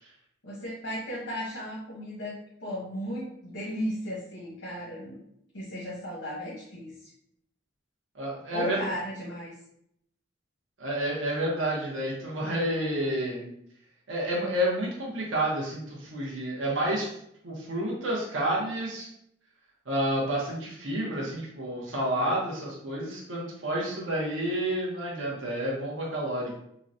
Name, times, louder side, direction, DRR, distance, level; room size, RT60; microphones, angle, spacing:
voice 1, 0.4-5.2 5.5-7.1 8.5-9.5, equal, 90° left, -6 dB, 0.9 m, -35 dB
voice 2, 8.1-8.8 10.8-13.5 14.1-17.1 17.4-19.1 19.9-26.6, right 1 dB, 80° right, -4 dB, 0.8 m, -30 dB
3.8 x 2.1 x 2.6 m, 0.74 s
head